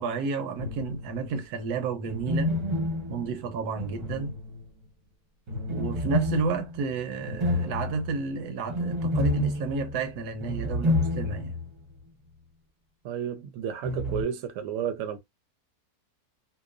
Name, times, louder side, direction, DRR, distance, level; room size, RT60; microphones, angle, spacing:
voice 1, 0.0-2.6 3.1-4.4 5.7-11.6, right 4 dB, 80° right, 1.1 m, -31 dB
sound 1, 0.5-1.3 2.1-4.8 5.5-11.7 12.0-12.1 13.8-14.2, left 1 dB, 25° right, 0.6 m, -30 dB
voice 2, 13.0-15.2, right 8 dB, 65° right, 0.9 m, -32 dB
2.9 x 2.1 x 2.4 m
omnidirectional pair, 1.6 m